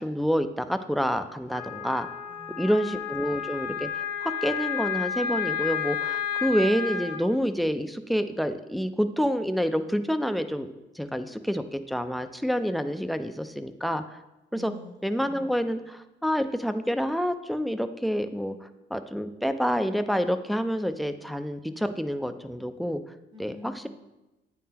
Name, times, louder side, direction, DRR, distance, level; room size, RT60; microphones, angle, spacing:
voice 1, 0.0-2.1 2.6-10.7 11.0-14.2 14.5-14.7 15.0-23.0 23.4-23.9, equal, ahead, 9 dB, 0.4 m, -28 dB
Wind instrument woodwind instrument, 1.5-7.2, left 8 dB, 55° left, 1.0 m, -31 dB
voice 2, 2.3-2.7 14.5-15.7 23.3-23.9, right 1 dB, 25° right, 6 dB, 0.8 m, -47 dB
9.5 x 3.7 x 2.8 m, 1.0 s
cardioid pair, 90°, 20 cm